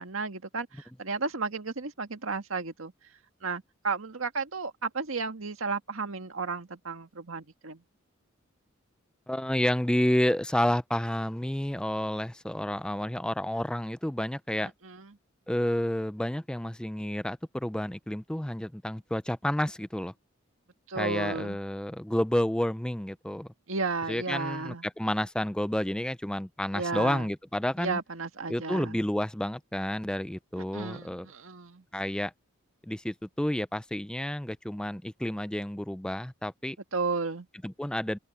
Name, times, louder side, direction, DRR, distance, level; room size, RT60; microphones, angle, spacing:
voice 1, 0.0-2.9 3.4-7.8 14.6-15.1 20.9-21.6 23.7-24.8 26.7-27.3 27.8-29.0 30.7-31.8 36.9-37.5, right 4 dB, 85° right, 1.7 m, -33 dB
voice 2, 9.3-14.7 15.5-20.1 21.0-23.5 24.1-28.0 28.5-31.3 31.9-32.3 32.8-36.8 37.6-38.2, left 1 dB, 5° left, 0.4 m, -30 dB
head